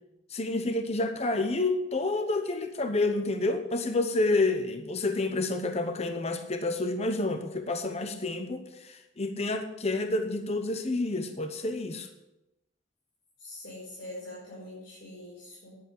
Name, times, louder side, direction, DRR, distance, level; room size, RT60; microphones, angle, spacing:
voice 1, 0.3-12.1, left 2 dB, 35° left, 7 dB, 0.9 m, -29 dB
voice 2, 13.4-15.7, left 1 dB, 70° left, -8 dB, 5.0 m, -43 dB
10.5 x 8.1 x 7.9 m, 0.91 s
head